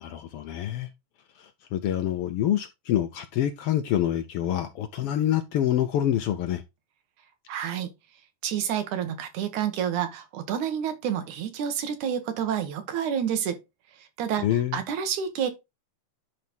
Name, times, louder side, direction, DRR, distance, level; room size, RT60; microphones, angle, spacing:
voice 1, 0.0-0.9 1.4-6.6 14.4-14.8, left 11 dB, 80° left, 1.3 m, -26 dB
voice 2, 7.5-7.9 8.4-13.6 14.0-14.5 14.7-15.5, right 8 dB, 85° right, 2.7 m, -29 dB
10.5 x 4.0 x 3.5 m
omnidirectional pair, 3.4 m